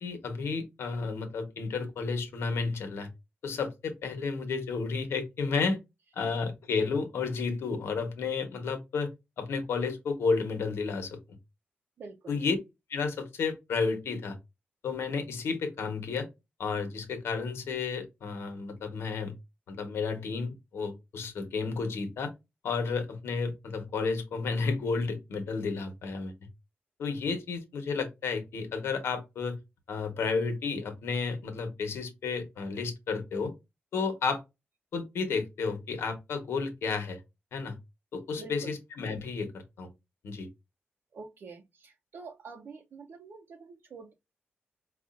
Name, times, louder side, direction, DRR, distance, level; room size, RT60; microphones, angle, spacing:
voice 1, 0.0-3.1 3.4-5.8 6.2-9.1 9.4-11.2 12.3-12.6 12.9-14.4 14.8-16.3 16.6-19.3 19.7-22.3 22.6-26.3 27.0-29.6 29.9-33.5 33.9-34.4 34.9-37.2 37.5-37.8 38.1-39.9 40.2-40.5, left 4 dB, 85° left, 1.0 m, -32 dB
voice 2, 12.0-12.4 38.4-38.8 41.1-44.1, right 4 dB, 65° right, 0.6 m, -46 dB
4.8 x 2.4 x 2.4 m
wide cardioid pair, 115°, 4 cm